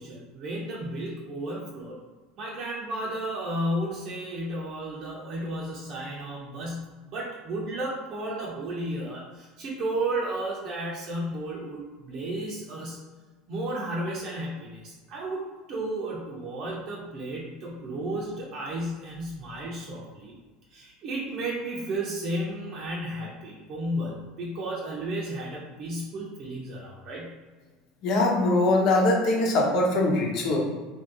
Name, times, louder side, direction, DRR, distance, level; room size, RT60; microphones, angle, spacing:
voice 1, 0.0-2.0 2.4-13.0 13.5-20.3 20.7-27.3, right 1 dB, 45° right, -4 dB, 0.8 m, -33 dB
voice 2, 28.0-30.6, left 2 dB, 50° left, -2 dB, 1.0 m, -22 dB
3.1 x 2.7 x 3.8 m, 1.3 s
supercardioid pair, 140°, 0 cm